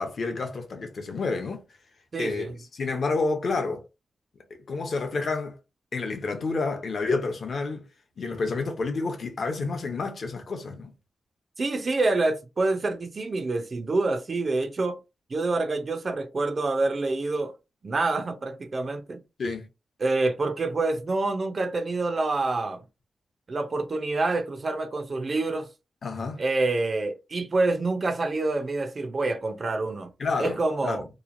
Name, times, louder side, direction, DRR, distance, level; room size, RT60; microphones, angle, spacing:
voice 1, 0.0-1.6 2.2-3.8 4.7-5.6 5.9-7.8 8.2-10.9 19.4-19.7 26.0-26.4 30.2-31.0, left 3 dB, 50° left, 0.6 m, -29 dB
voice 2, 2.1-2.5 11.6-15.0 15.3-17.5 17.8-19.2 20.0-22.8 23.5-25.7 26.4-30.1 30.4-31.1, right 3 dB, 35° right, 0.3 m, -27 dB
2.9 x 2.1 x 2.5 m
wide cardioid pair, 175°, 0 cm